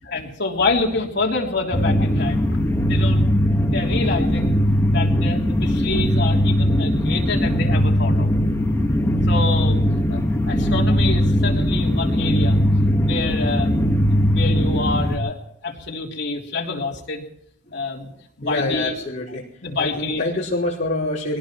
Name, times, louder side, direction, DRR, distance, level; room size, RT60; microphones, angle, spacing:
voice 1, 0.1-2.5 2.9-3.2 3.7-4.5 4.9-8.3 9.3-9.8 10.1-10.2 10.5-12.6 13.0-15.4 15.6-17.2 17.7-18.1 18.4-18.9 19.3-20.2, left 3 dB, 55° left, -1 dB, 3.3 m, -27 dB
sound 1, 1.7-15.2, equal, 15° left, 1.5 m, -19 dB
voice 2, 18.4-19.4 19.8-21.4, left 2 dB, 35° left, -8 dB, 4.7 m, -26 dB
23.5 x 18.5 x 3.1 m, 0.77 s
head